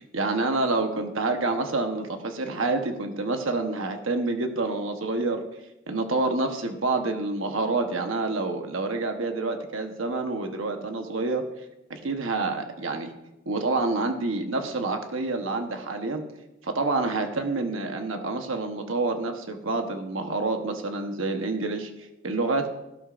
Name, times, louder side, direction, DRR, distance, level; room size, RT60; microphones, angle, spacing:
voice 1, 0.1-5.4 5.9-11.4 11.9-13.1 13.5-16.2 16.6-22.7, right 3 dB, 85° right, 5 dB, 1.1 m, -28 dB
14.5 x 12.5 x 2.5 m, 0.93 s
head